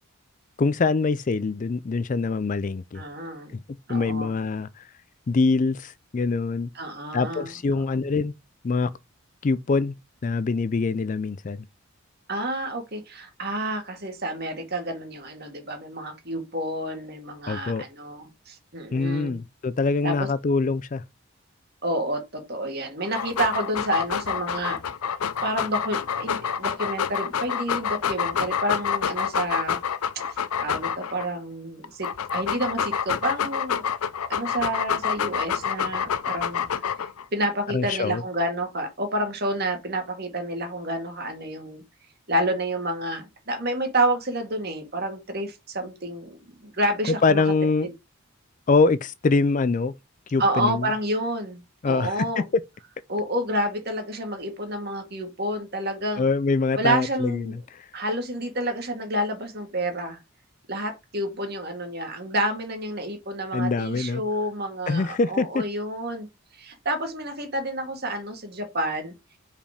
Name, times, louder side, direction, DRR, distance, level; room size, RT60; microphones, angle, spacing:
voice 1, 0.6-3.0 3.9-4.9 5.3-6.7 7.1-8.3 8.6-8.9 9.4-9.9 10.2-11.6 17.5-17.8 18.9-21.0 37.7-38.2 47.0-47.9 48.7-49.9 50.3-50.9 51.8-52.4 56.2-57.9 63.5-64.2 64.9-65.7, left 4 dB, 35° left, 0.4 m, -24 dB
voice 2, 2.9-3.6 3.9-4.3 6.7-7.8 12.3-19.4 20.0-20.1 21.8-24.8 25.4-29.8 30.6-33.9 34.3-36.7 37.0-41.8 42.3-47.4 47.8-47.9 50.4-52.5 53.1-56.3 56.8-57.6 57.9-60.2 60.7-66.3 66.5-69.1, right 1 dB, 45° right, 1.9 m, -29 dB
Dog, 23.0-31.3 31.8-37.2, left 7 dB, 85° left, 0.6 m, -27 dB
5.2 x 5.1 x 4.9 m
head